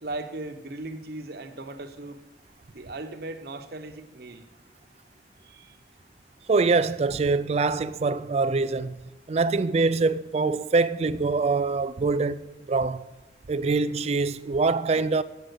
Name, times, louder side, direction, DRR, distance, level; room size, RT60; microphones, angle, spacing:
voice 1, 0.0-2.2 2.7-4.5 5.4-5.8, right 2 dB, 55° right, 0.9 m, -38 dB
voice 2, 6.5-8.9 9.3-12.4 12.7-13.0 13.5-15.2, right 3 dB, 35° right, 0.3 m, -24 dB
8.0 x 7.4 x 7.9 m
head